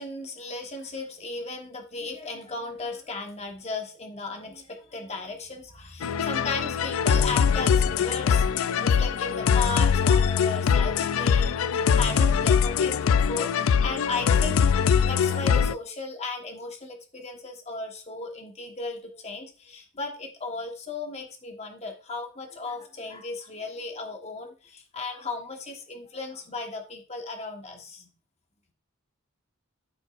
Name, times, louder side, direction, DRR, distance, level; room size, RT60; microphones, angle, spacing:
voice 1, 0.0-11.5 11.9-14.7 15.0-28.1, left 3 dB, 30° left, 3 dB, 1.3 m, -35 dB
sound 1, 6.0-15.7, left 7 dB, 80° left, 0.4 m, -22 dB
13.0 x 5.1 x 2.5 m, 0.36 s
head